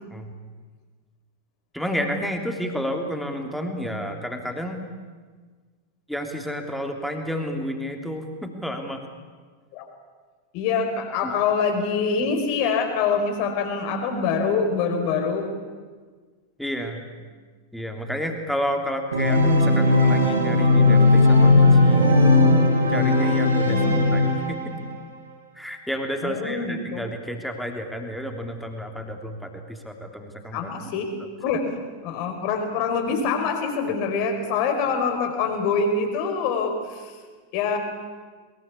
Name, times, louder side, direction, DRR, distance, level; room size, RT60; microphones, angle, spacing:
voice 1, 1.7-4.8 6.1-9.1 11.2-11.3 16.6-17.0 17.7-22.4 22.9-23.8 24.1-24.7 25.6-30.7, equal, ahead, 3 dB, 3.2 m, -31 dB
voice 2, 10.5-15.5 23.7-24.0 26.2-27.0 30.5-31.1 31.4-31.6 32.0-37.1 37.5-37.8, left 5 dB, 45° left, 5 dB, 4.8 m, -25 dB
Organ, 19.1-24.8, left 2 dB, 75° right, 6.8 m, -17 dB
22.0 x 21.5 x 8.5 m, 1.5 s
figure-of-eight pair, 90°, 0 cm